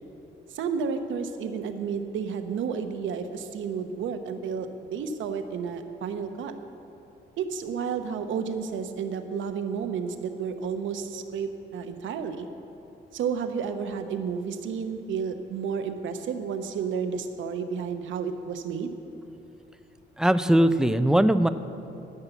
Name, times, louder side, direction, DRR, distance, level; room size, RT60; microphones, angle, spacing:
voice 1, 0.5-6.5 7.4-12.5 13.1-18.9, right 6 dB, 75° right, 7 dB, 0.9 m, -31 dB
voice 2, 20.2-21.5, right 1 dB, 5° right, 12 dB, 0.4 m, -20 dB
13.5 x 5.6 x 8.1 m, 2.8 s
cardioid pair, 90°, 20 cm